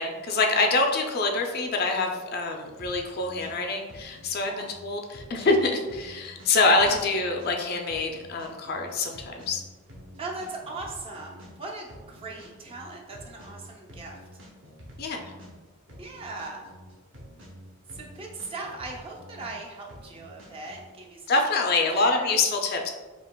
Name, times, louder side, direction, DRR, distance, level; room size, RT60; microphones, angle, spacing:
voice 1, 0.0-9.6 15.0-15.3 21.3-22.9, left 3 dB, 45° left, 2 dB, 0.4 m, -25 dB
sound 1, 2.6-20.8, equal, 55° right, 0.8 m, -48 dB
voice 2, 10.2-14.4 16.0-16.6 17.9-22.4, right 3 dB, 25° right, -1 dB, 0.4 m, -39 dB
4.8 x 2.8 x 2.2 m, 1.3 s
head